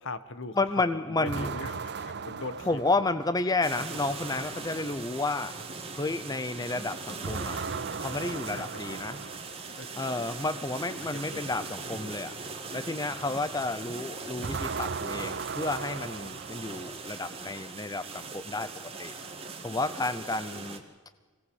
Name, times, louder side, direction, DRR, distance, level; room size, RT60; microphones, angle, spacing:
voice 1, 0.0-0.6 0.9-2.8 4.6-4.7 8.5-9.0 9.8-10.1 11.0-11.5 11.8-12.1, left 2 dB, 60° left, 13 dB, 1.2 m, -41 dB
voice 2, 0.6-1.5 2.7-5.5 5.9-7.6 8.0-9.2 10.0-12.3 12.7-18.7 19.0-19.1 19.6-20.8, left 2 dB, 15° left, 12 dB, 0.6 m, -31 dB
sound 1, 1.3-3.6 7.2-9.7 14.4-17.0, right 5 dB, 50° right, 0.7 m, -37 dB
sound 2, 3.6-20.8, right 4 dB, 25° right, 2.0 m, -40 dB
25.0 x 18.0 x 7.9 m, 1.4 s
head